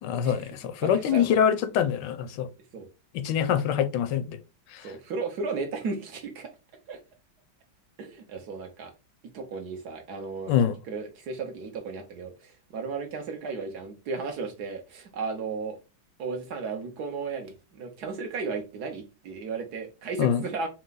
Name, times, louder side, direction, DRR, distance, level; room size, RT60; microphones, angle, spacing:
voice 1, 0.0-2.5 3.1-4.4 4.7-4.9 10.5-10.8 20.2-20.4, left 8 dB, 85° left, 1.3 m, -25 dB
voice 2, 0.8-1.3 2.7-2.9 4.8-6.5 6.9-7.0 8.0-8.9 9.3-10.5 10.9-15.8 16.2-20.7, right 4 dB, 65° right, 1.4 m, -34 dB
4.6 x 2.2 x 3.9 m
omnidirectional pair, 1.9 m